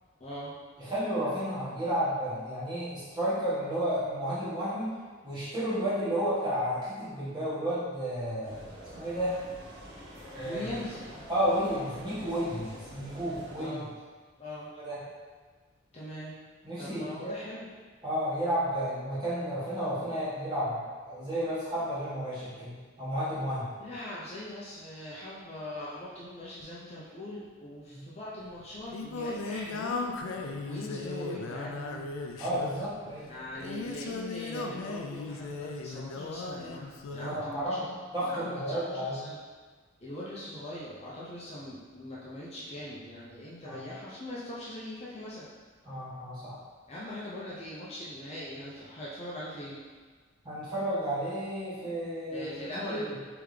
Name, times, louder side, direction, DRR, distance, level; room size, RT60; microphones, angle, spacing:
voice 1, 0.2-0.5 10.4-11.0 13.5-13.9 14.4-14.7 15.9-16.3 16.8-17.7 20.1-20.3 23.8-32.1 33.2-37.9 38.3-39.4 40.0-45.5 46.9-49.8 52.3-53.2, left 1 dB, 30° left, -7 dB, 0.6 m, -41 dB
voice 2, 0.8-4.8 5.2-8.6 8.9-9.3 10.3-10.6 11.3-13.8 14.8-15.0 16.6-17.3 18.0-23.7 27.9-28.0 32.4-33.3 37.2-37.8 38.1-39.2 43.6-43.8 45.8-46.6 50.4-52.5 52.9-53.0, equal, 20° right, -12 dB, 1.5 m, -32 dB
sound 1, 8.4-13.7, equal, 50° right, 1.1 m, -46 dB
Singing, 28.4-37.5, left 3 dB, 85° left, 0.4 m, -37 dB
3.5 x 3.4 x 3.2 m, 1.5 s
head